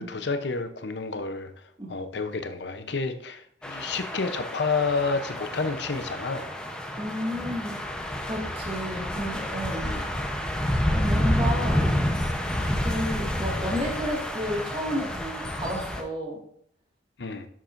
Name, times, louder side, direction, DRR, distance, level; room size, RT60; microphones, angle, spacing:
voice 1, 0.0-6.5 9.8-10.1 17.2-17.5, left 4 dB, 70° left, 9 dB, 0.7 m, -30 dB
sound 1, 3.6-16.0, equal, 5° left, 0.8 m, -29 dB
voice 2, 7.0-7.8 8.3-9.9 10.9-11.9 12.8-16.4, equal, 30° right, -1 dB, 1.9 m, -31 dB
10.5 x 7.4 x 2.6 m, 0.68 s
head